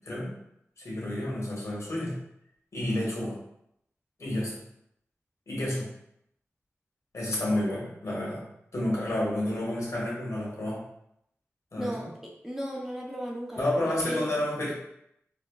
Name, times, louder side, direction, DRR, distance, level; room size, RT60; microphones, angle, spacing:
voice 1, 0.8-2.1 2.7-3.4 4.2-4.5 5.5-5.9 7.1-8.4 8.7-10.8 11.7-11.9 13.6-14.7, left 1 dB, 75° left, -5 dB, 1.4 m, -30 dB
voice 2, 11.8-12.1 12.4-14.4, equal, 5° right, -3 dB, 0.7 m, -36 dB
4.0 x 2.8 x 2.3 m, 0.77 s
wide cardioid pair, 60°, 5 cm